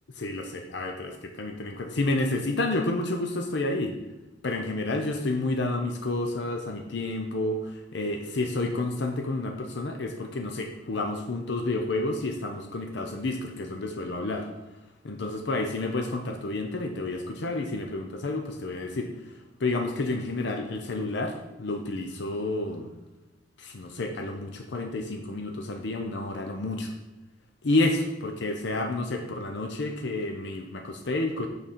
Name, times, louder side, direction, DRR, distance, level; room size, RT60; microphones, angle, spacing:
voice 1, 0.2-3.9 4.4-14.5 15.0-19.1 19.6-22.9 23.6-26.9 27.6-31.5, left 2 dB, 70° left, 4 dB, 0.6 m, -30 dB
6.2 x 5.3 x 4.3 m, 1.0 s
head